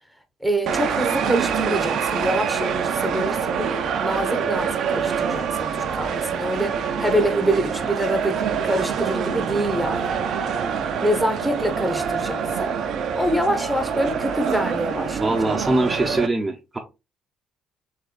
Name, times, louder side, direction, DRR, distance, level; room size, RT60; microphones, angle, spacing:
voice 1, 0.4-10.1 11.0-12.7 13.1-15.5, equal, ahead, 1.0 m, -26 dB
sound 1, 0.7-16.3, right 7 dB, 60° right, 0.5 m, -25 dB
voice 2, 15.2-16.8, right 2 dB, 25° right, 0.7 m, -22 dB
3.8 x 3.2 x 3.1 m
figure-of-eight pair, 45°, 0 cm